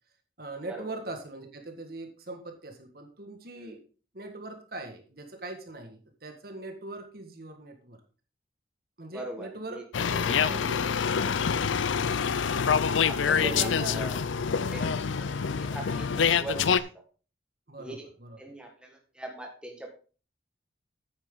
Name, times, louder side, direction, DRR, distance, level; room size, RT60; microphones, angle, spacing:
voice 1, 0.4-3.8 4.1-8.0 9.0-10.9 11.5-12.2 13.4-14.0 14.8-15.0 17.7-18.4, right 2 dB, 50° right, 5 dB, 1.7 m, -41 dB
voice 2, 9.1-9.8 13.0-14.2 14.7-14.9 15.2-15.3 15.6-16.9 17.8-18.1 18.4-19.9, right 1 dB, 5° right, 1 dB, 1.6 m, -40 dB
sound 1, 9.9-16.8, left 6 dB, 85° left, 0.5 m, -26 dB
9.3 x 8.9 x 3.8 m, 0.37 s
head